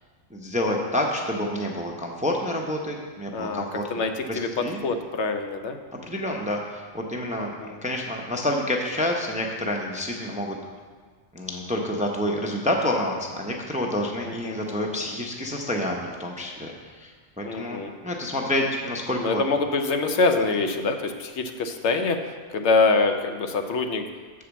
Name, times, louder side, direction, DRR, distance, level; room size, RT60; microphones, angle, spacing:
voice 1, 0.3-3.8 4.3-4.8 6.1-7.5 7.8-10.6 11.3-19.4, left 1 dB, 10° right, 0 dB, 0.5 m, -28 dB
voice 2, 3.3-5.8 7.4-7.7 14.2-14.6 17.4-17.9 19.2-24.1, left 3 dB, 70° left, 6 dB, 0.9 m, -25 dB
7.0 x 5.0 x 7.0 m, 1.5 s
omnidirectional pair, 1.2 m